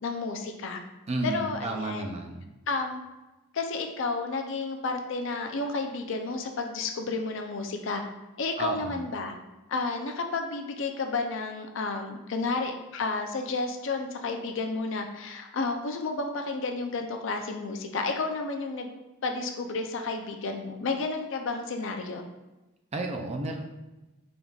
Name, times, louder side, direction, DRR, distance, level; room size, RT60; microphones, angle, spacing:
voice 1, 0.0-0.8 1.2-2.1 2.7-3.0 3.5-8.0 8.4-9.4 9.7-18.9 19.2-22.2, left 3 dB, 60° left, 4 dB, 0.5 m, -31 dB
voice 2, 1.1-2.5 8.6-9.0 22.9-23.6, right 2 dB, 30° right, 2 dB, 0.4 m, -32 dB
5.4 x 3.5 x 2.4 m, 1.0 s
head